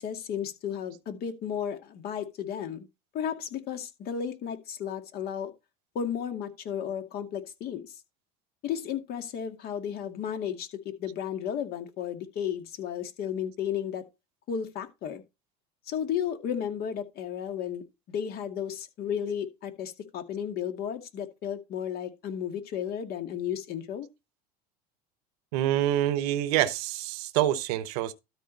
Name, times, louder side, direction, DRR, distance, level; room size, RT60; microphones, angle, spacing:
voice 1, 0.0-2.9 3.1-5.5 5.9-7.9 8.6-14.0 14.5-15.2 15.9-24.1, left 8 dB, 55° left, 2.2 m, -33 dB
voice 2, 25.5-28.1, right 13 dB, 80° right, 1.0 m, -26 dB
12.5 x 4.8 x 4.1 m
supercardioid pair, 110°, 20 cm